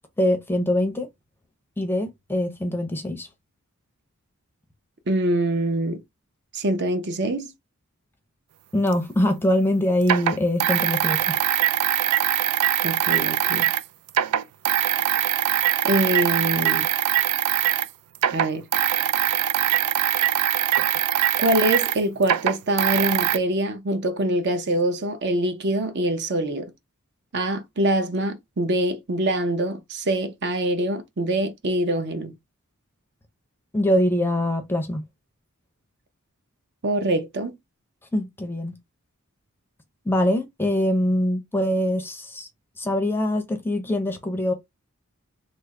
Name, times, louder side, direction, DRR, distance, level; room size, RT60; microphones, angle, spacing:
voice 1, 0.2-1.1 1.8-3.3 8.7-11.4 33.7-35.0 38.1-38.8 40.0-42.5 42.8-44.5, left 1 dB, 10° left, 0.6 m, -23 dB
voice 2, 5.1-6.0 6.5-7.5 12.8-13.7 15.8-16.9 18.3-18.6 21.4-26.7 27.3-32.3 36.8-37.5, right 1 dB, 50° right, 0.6 m, -24 dB
sound 1, 8.9-9.0 10.0-13.8 14.1-17.9 18.2-23.4, right 11 dB, 90° right, 0.3 m, -22 dB
3.3 x 2.1 x 3.6 m
head